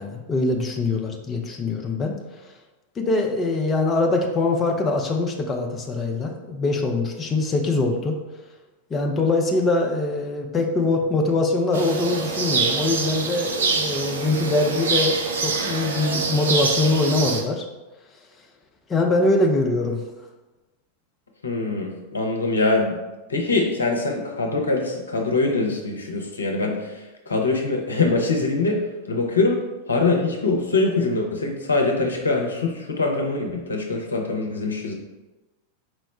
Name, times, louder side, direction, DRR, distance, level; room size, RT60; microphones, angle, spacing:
voice 1, 0.0-2.2 3.0-8.2 8.9-17.7 18.9-20.0, left 2 dB, 20° left, 1 dB, 0.5 m, -23 dB
sound 1, 11.7-17.4, right 4 dB, 65° right, 0.5 m, -25 dB
voice 2, 21.4-23.0 23.3-28.8 29.1-34.9, left 3 dB, 75° left, 1 dB, 0.6 m, -23 dB
4.6 x 2.1 x 4.2 m, 1.1 s
figure-of-eight pair, 90°, 0 cm